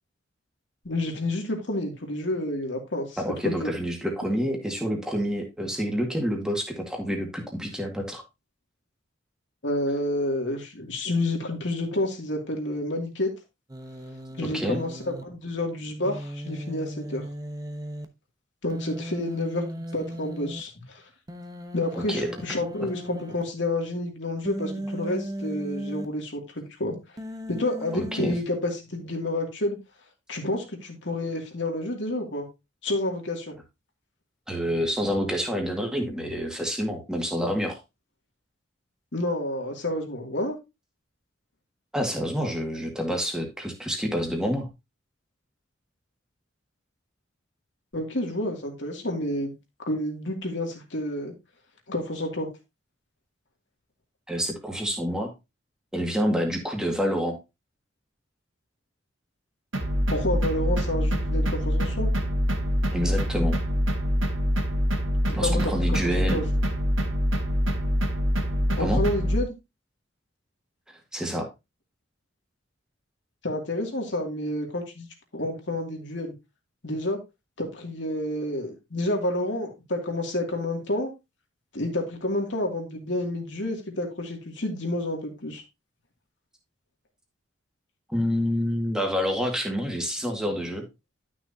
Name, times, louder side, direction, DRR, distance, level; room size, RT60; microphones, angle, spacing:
voice 1, 0.8-3.7 9.6-13.3 14.4-14.9 15.2-17.2 18.6-19.6 19.9-21.0 21.7-27.0 27.5-29.8 30.3-32.5 32.8-33.6 39.1-40.6 47.9-49.5 49.8-51.3 51.9-52.5 60.1-62.1 65.3-66.6 68.8-69.5 73.4-75.1 75.3-76.3 76.8-77.2 77.6-81.1 81.7-85.6, left 1 dB, 65° left, 2 dB, 2.6 m, -29 dB
voice 2, 3.2-8.2 14.5-14.8 22.1-22.3 27.9-28.4 34.5-37.8 41.9-44.7 54.3-55.3 55.9-57.4 62.9-63.6 65.3-66.4 68.8-69.0 71.1-71.5 88.1-90.8, equal, 5° right, 1 dB, 2.0 m, -28 dB
Human voice, 13.7-15.2 16.0-18.1 18.7-20.6 21.3-23.4 24.5-26.1 27.2-28.4, equal, 20° right, 0.9 m, -37 dB
sound 1, 59.7-69.4, equal, 85° right, 1.8 m, -25 dB
12.0 x 6.3 x 2.8 m, 0.24 s
head